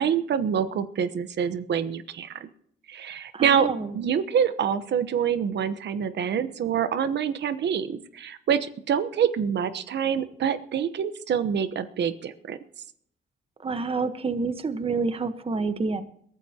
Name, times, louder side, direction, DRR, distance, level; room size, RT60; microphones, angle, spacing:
voice 1, 0.0-2.5 2.9-3.7 3.9-12.6, right 8 dB, 60° right, 12 dB, 1.0 m, -26 dB
voice 2, 3.3-4.0 13.6-16.0, right 4 dB, 30° right, 10 dB, 1.1 m, -28 dB
22.0 x 14.0 x 2.9 m, 0.67 s
cardioid pair, 90°, 20 cm